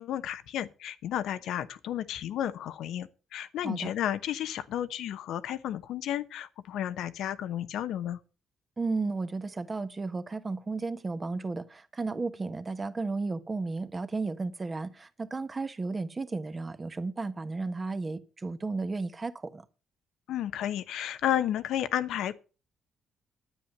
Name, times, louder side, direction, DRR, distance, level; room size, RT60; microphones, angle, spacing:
voice 1, 0.0-8.2 20.3-22.3, left 11 dB, 80° left, 0.9 m, -32 dB
voice 2, 8.8-19.6, right 3 dB, 25° right, 1.2 m, -33 dB
10.0 x 9.5 x 6.6 m
cardioid pair, 90°, 0 cm